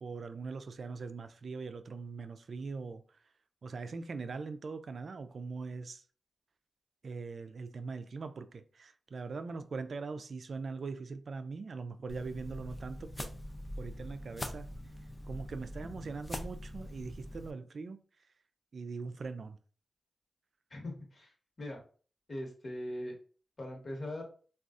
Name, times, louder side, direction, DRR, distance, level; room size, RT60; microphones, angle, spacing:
voice 1, 0.0-3.2 3.6-6.0 7.0-13.4 13.8-14.7 15.3-18.0 18.7-19.6, right 4 dB, 65° right, 0.3 m, -41 dB
sound 1, 12.1-17.5, left 1 dB, 20° left, 0.4 m, -43 dB
voice 2, 20.7-21.3 21.6-21.8 22.3-23.1 23.6-24.2, left 1 dB, 50° left, 1.2 m, -40 dB
3.5 x 2.4 x 2.4 m
cardioid pair, 60°, 0 cm